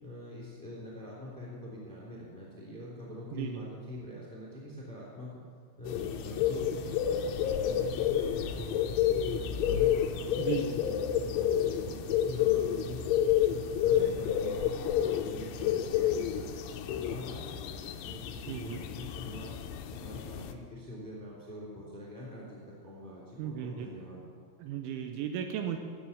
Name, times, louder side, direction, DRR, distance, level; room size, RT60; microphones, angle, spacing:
voice 1, 0.0-5.4 5.8-8.7 9.2-13.0 13.4-16.5 16.8-19.5 19.9-24.2, left 1 dB, 5° left, -5 dB, 1.8 m, -44 dB
voice 2, 3.3-3.6 10.4-10.7 18.5-18.8 23.4-23.9 24.6-25.8, right 9 dB, 80° right, 5 dB, 3.0 m, -35 dB
sound 1, 5.8-20.5, left 9 dB, 80° left, 3.1 m, -30 dB
12.0 x 7.4 x 8.3 m, 2.1 s
omnidirectional pair, 5.7 m